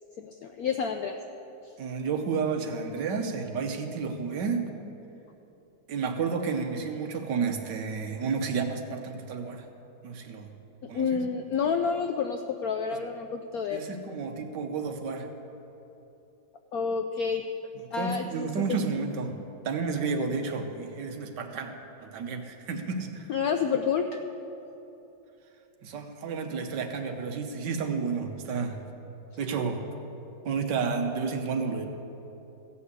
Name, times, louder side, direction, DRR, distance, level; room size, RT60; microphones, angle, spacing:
voice 1, 0.2-1.2 10.9-13.8 16.7-17.4 17.9-18.8 23.3-24.2, left 6 dB, 90° left, 5 dB, 0.8 m, -29 dB
voice 2, 1.8-4.7 5.9-9.6 10.0-10.5 10.9-11.2 13.7-15.3 18.0-19.4 19.6-21.7 22.0-23.3 25.8-28.8 29.4-29.8 30.4-31.9, right 5 dB, 65° right, 5 dB, 1.4 m, -31 dB
15.0 x 5.6 x 8.1 m, 3.0 s
omnidirectional pair, 2.2 m